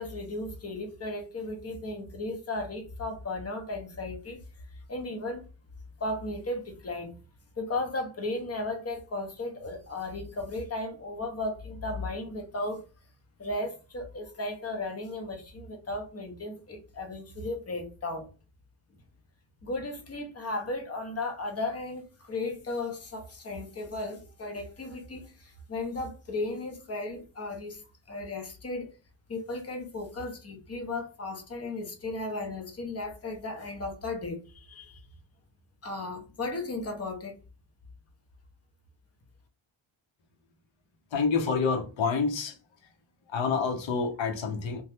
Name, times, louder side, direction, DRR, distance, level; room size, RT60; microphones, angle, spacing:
voice 1, 0.0-4.4 4.9-5.4 6.0-7.1 7.6-12.8 13.4-18.3 19.6-27.8 28.1-28.9 29.3-35.0 35.8-37.3, left 2 dB, 30° left, 0.6 m, -35 dB
voice 2, 41.1-42.6 43.3-44.8, left 5 dB, 70° left, 0.8 m, -28 dB
2.8 x 2.1 x 3.3 m
wide cardioid pair, 170°, 48 cm